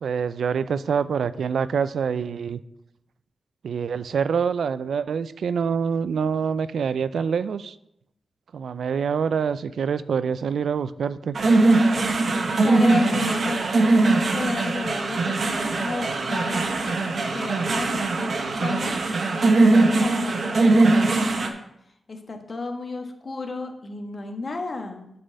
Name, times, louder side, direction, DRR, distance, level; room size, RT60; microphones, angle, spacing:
voice 1, 0.0-2.6 3.6-7.8 8.5-11.4, right 6 dB, 80° right, 15 dB, 0.3 m, -25 dB
sound 1, 11.3-21.5, right 2 dB, 65° right, 1.0 m, -21 dB
voice 2, 12.6-14.0 14.3-19.0 19.3-21.4 22.1-25.1, left 3 dB, 50° left, 4 dB, 1.3 m, -33 dB
7.8 x 4.2 x 6.4 m, 0.80 s
cardioid pair, 55°, 0 cm